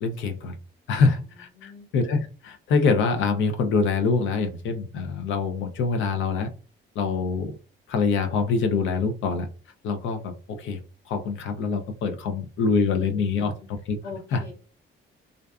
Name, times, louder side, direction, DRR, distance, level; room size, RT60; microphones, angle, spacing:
voice 1, 0.0-0.6 0.9-6.5 7.0-7.5 7.9-9.5 9.8-10.8 11.1-13.5 13.9-14.0 14.3-14.4, left 4 dB, 75° left, 7 dB, 0.5 m, -25 dB
voice 2, 1.5-1.9 13.2-13.7 14.0-14.5, left 4 dB, 55° left, -4 dB, 0.9 m, -41 dB
2.5 x 2.2 x 2.3 m, 0.37 s
cardioid pair, 90°, 20 cm